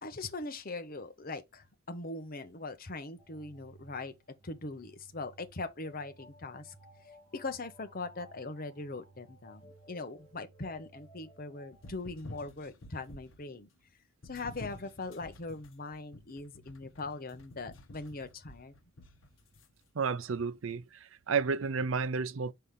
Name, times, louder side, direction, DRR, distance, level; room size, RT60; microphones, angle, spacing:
voice 1, 0.0-4.1 4.4-6.7 7.3-13.7 14.2-18.7, left 3 dB, 45° left, 1.0 m, -41 dB
sound 1, 3.2-11.9, right 1 dB, 25° left, 1.8 m, -58 dB
sound 2, 11.7-13.5 14.2-19.7, left 1 dB, 90° left, 1.0 m, -51 dB
voice 2, 19.9-22.5, right 5 dB, 85° right, 0.5 m, -32 dB
5.6 x 5.6 x 3.3 m
head